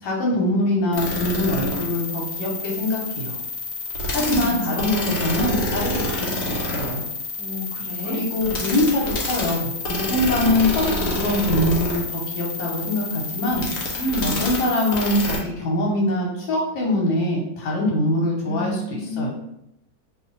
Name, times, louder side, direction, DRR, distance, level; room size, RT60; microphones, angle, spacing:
voice 1, 0.0-3.4 4.1-7.0 8.0-13.6 14.2-19.3, left 1 dB, 80° left, -3 dB, 1.6 m, -23 dB
sound 1, 0.9-15.4, left 2 dB, 60° left, 1.0 m, -28 dB
voice 2, 4.1-4.9 7.4-8.2 10.9-11.2 14.0-14.7 18.4-19.3, equal, 20° right, -5 dB, 0.9 m, -30 dB
2.9 x 2.7 x 3.8 m, 0.82 s
omnidirectional pair, 2.0 m